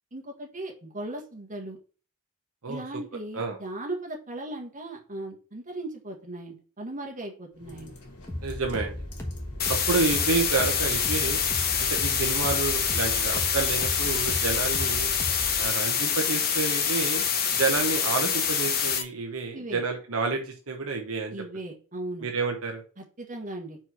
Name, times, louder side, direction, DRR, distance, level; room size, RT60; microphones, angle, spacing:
voice 1, 0.1-1.8 2.7-7.9 19.5-19.8 21.3-22.3 23.0-23.8, right 1 dB, 35° right, 1 dB, 1.6 m, -37 dB
sound 1, 7.5-12.9, left 1 dB, 90° left, 2.1 m, -46 dB
sound 2, 8.3-15.7, left 1 dB, 10° left, 1.2 m, -36 dB
voice 2, 8.4-8.9 9.7-11.4 11.8-15.1 15.6-17.2 17.5-21.4 22.2-22.8, right 4 dB, 65° right, 2 dB, 1.0 m, -29 dB
sound 3, 9.6-19.0, left 7 dB, 45° left, 1.0 m, -26 dB
4.7 x 4.4 x 5.8 m, 0.38 s
head